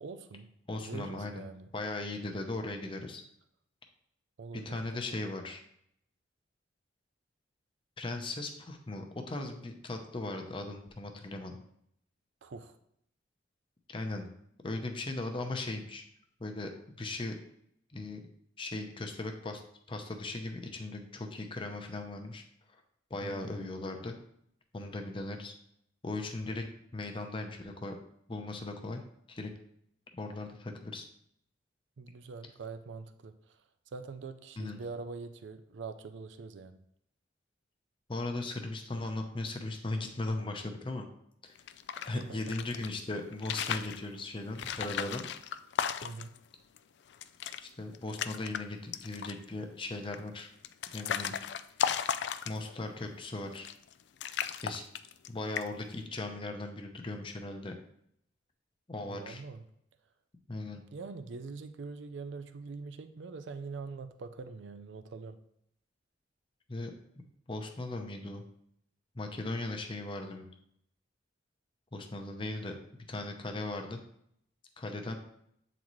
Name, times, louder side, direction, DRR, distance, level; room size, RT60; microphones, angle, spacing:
voice 1, 0.0-0.5 0.8-1.7 4.4-5.2 12.4-12.8 23.2-23.7 32.0-33.3 33.9-36.8 42.1-42.4 46.0-46.3 59.0-59.6 60.6-65.4, right 4 dB, 75° right, 10 dB, 0.4 m, -44 dB
voice 2, 0.7-1.5 1.7-3.2 4.5-5.6 8.0-11.6 13.9-14.3 14.6-16.0 16.4-16.7 17.0-17.3 17.9-18.2 18.6-19.6 19.9-22.4 23.1-24.2 24.7-25.5 26.0-26.6 26.9-27.9 28.3-29.0 29.3-29.5 30.2-31.1 34.6-34.8 38.1-41.1 42.0-45.3 47.6-50.5 50.9-51.3 52.5-53.7 54.6-54.8 55.3-57.7 58.9-59.4 60.5-60.8 66.7-66.9 67.5-68.4 69.1-70.5 71.9-72.8 73.1-74.0 74.8-75.2, left 2 dB, 25° left, 4 dB, 0.7 m, -38 dB
sound 1, 41.6-42.9 43.3-44.0 44.6-46.4 46.8-46.9 47.1-47.6 47.9-48.6 48.9-49.5 50.1-52.8 53.5-53.9 54.2-55.3 55.6-55.9, left 8 dB, 65° left, 0.3 m, -35 dB
8.4 x 4.0 x 3.1 m, 0.72 s
head